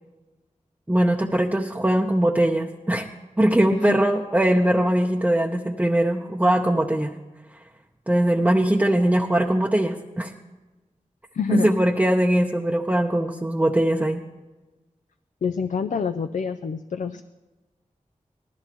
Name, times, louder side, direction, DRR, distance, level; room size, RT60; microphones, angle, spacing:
voice 1, 0.9-3.1 3.4-7.1 8.1-10.3 11.5-14.2, right 1 dB, 10° right, 0 dB, 0.7 m, -21 dB
voice 2, 11.3-11.7 15.4-17.2, left 6 dB, 75° left, 9 dB, 0.4 m, -27 dB
18.5 x 13.5 x 3.0 m, 1.2 s
wide cardioid pair, 55°, 13 cm